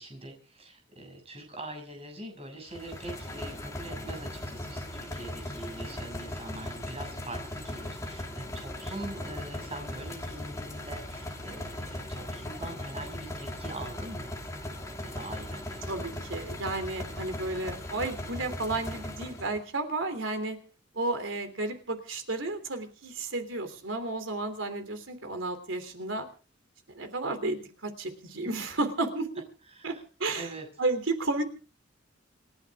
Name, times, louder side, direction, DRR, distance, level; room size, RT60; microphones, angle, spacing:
voice 1, 0.0-14.3 15.0-15.8 29.7-30.0 30.3-30.6, right 2 dB, 30° right, 3 dB, 6.8 m, -43 dB
sound 1, 2.7-19.6, left 1 dB, 15° left, 2.9 m, -38 dB
voice 2, 15.8-20.6 20.9-26.3 26.9-29.3 29.8-29.9 30.2-30.5 30.8-31.4, right 2 dB, 75° right, 8 dB, 3.2 m, -32 dB
28.0 x 11.0 x 3.7 m, 0.38 s
head